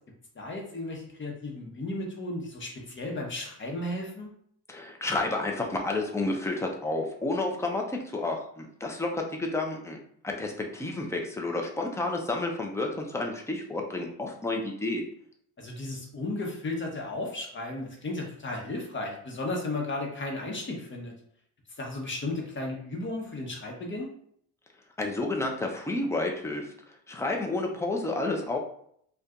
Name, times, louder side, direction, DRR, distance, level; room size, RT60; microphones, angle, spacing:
voice 1, 0.3-4.3 15.6-21.1 21.8-24.1, left 2 dB, 25° left, 0 dB, 1.0 m, -34 dB
voice 2, 4.7-10.0 10.2-15.0 25.0-26.7 27.1-28.6, left 2 dB, 5° left, 1 dB, 0.5 m, -30 dB
2.5 x 2.3 x 3.6 m, 0.66 s
supercardioid pair, 85°, 46 cm